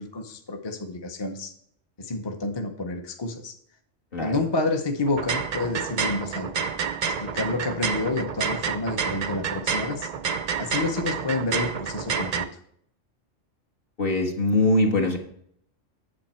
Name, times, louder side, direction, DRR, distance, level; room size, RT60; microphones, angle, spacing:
voice 1, 0.0-1.5 2.0-3.5 4.2-6.5 7.2-10.1 10.6-12.5, left 2 dB, 25° left, 4 dB, 0.6 m, -29 dB
sound 1, 5.1-12.4, right 6 dB, 60° right, 0.4 m, -29 dB
voice 2, 14.0-15.2, left 2 dB, 45° left, 2 dB, 1.6 m, -22 dB
8.8 x 7.3 x 4.3 m, 0.65 s
omnidirectional pair, 1.3 m